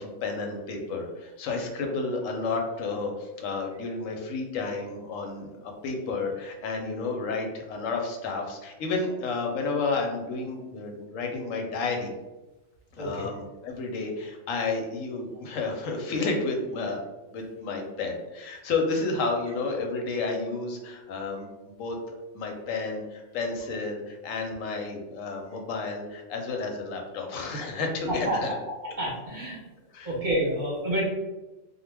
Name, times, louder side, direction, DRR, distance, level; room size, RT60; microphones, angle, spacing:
voice 1, 0.0-12.1 13.0-17.0 17.3-21.5 21.8-22.0 22.3-28.6 29.9-30.1, left 3 dB, 85° left, 2 dB, 1.0 m, -31 dB
voice 2, 29.0-29.6 30.0-31.0, right 1 dB, 50° right, -4 dB, 0.7 m, -28 dB
2.2 x 2.1 x 3.2 m, 1.1 s
omnidirectional pair, 1.3 m